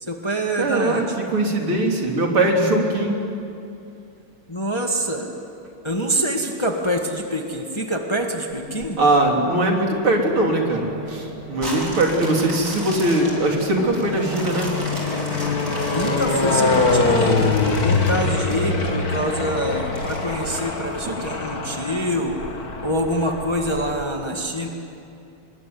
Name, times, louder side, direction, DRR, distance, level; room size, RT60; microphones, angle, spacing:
voice 1, 0.0-1.2 4.5-5.3 5.8-9.0 11.7-12.2 15.7-17.4 17.8-22.4 22.8-24.7, equal, 15° left, 2 dB, 1.7 m, -26 dB
voice 2, 0.6-3.2 9.0-14.7 21.1-21.2, right 2 dB, 75° right, 1 dB, 4.1 m, -21 dB
sound 1, 8.5-9.3 10.0-24.0, left 3 dB, 45° left, 2.5 m, -25 dB
sound 2, 11.6-18.9 19.4-19.5 19.9-21.2 21.8-21.9, right 1 dB, 35° right, 5.1 m, -36 dB
25.5 x 22.0 x 9.6 m, 2.6 s
omnidirectional pair, 2.4 m